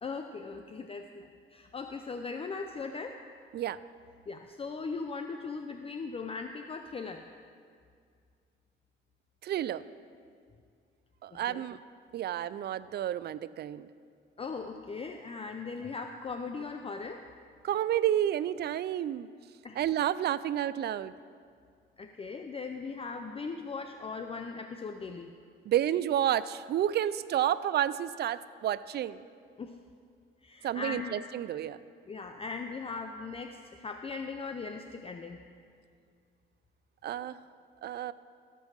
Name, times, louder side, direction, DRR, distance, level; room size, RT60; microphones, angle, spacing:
voice 1, 0.0-3.2 4.3-7.2 11.3-11.7 14.4-17.2 19.6-19.8 22.0-25.3 29.6-29.8 30.4-31.1 32.1-35.4, left 4 dB, 30° left, 6 dB, 0.5 m, -39 dB
voice 2, 9.4-9.8 11.2-11.8 12.1-13.9 17.6-19.3 19.8-21.1 25.7-29.2 30.6-31.8 37.0-37.4 37.8-38.1, right 11 dB, 55° right, 16 dB, 0.4 m, -30 dB
13.5 x 5.4 x 6.3 m, 2.2 s
cardioid pair, 90°, 20 cm